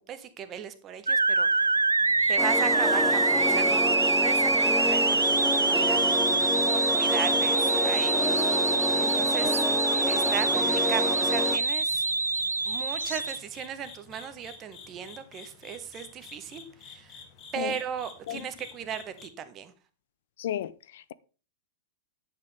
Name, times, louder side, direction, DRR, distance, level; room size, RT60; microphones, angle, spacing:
voice 1, 0.1-1.5 2.3-5.2 5.6-6.2 6.6-8.5 9.0-9.6 10.1-12.1 12.7-17.2 17.5-19.7, right 8 dB, 30° right, 1.5 m, -37 dB
sound 1, 1.1-13.4, right 3 dB, 80° right, 0.4 m, -25 dB
sound 2, 2.0-19.3, left 6 dB, 35° left, 2.6 m, -49 dB
sound 3, 2.4-11.6, left 2 dB, 5° left, 1.1 m, -29 dB
voice 2, 20.4-21.1, left 11 dB, 55° left, 0.6 m, -34 dB
10.5 x 8.8 x 3.5 m
figure-of-eight pair, 100°, 0 cm